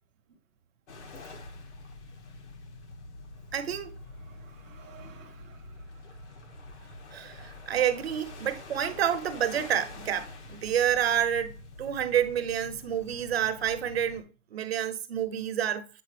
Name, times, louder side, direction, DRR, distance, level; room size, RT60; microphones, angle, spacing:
sound 1, 0.9-14.2, left 2 dB, 65° left, 1.8 m, -46 dB
voice 1, 3.5-3.9 7.1-14.2 14.5-15.9, right 9 dB, 55° right, 0.9 m, -29 dB
voice 2, 4.1-6.5 12.0-12.1, right 4 dB, 10° right, 0.4 m, -55 dB
7.8 x 3.9 x 3.3 m
hypercardioid pair, 160°, 38 cm